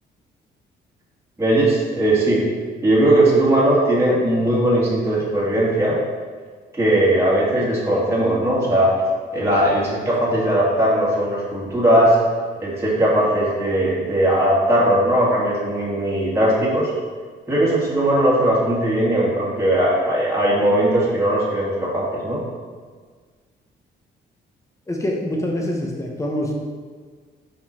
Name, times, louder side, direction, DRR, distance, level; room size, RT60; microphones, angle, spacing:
voice 1, 1.4-2.4 2.8-6.0 6.7-8.9 9.3-12.2 12.6-16.9 17.5-22.4, right 1 dB, 15° right, -7 dB, 1.9 m, -19 dB
voice 2, 24.9-26.5, left 1 dB, 15° left, 0 dB, 1.1 m, -25 dB
5.7 x 5.2 x 4.3 m, 1.6 s
cardioid pair, 90°, 20 cm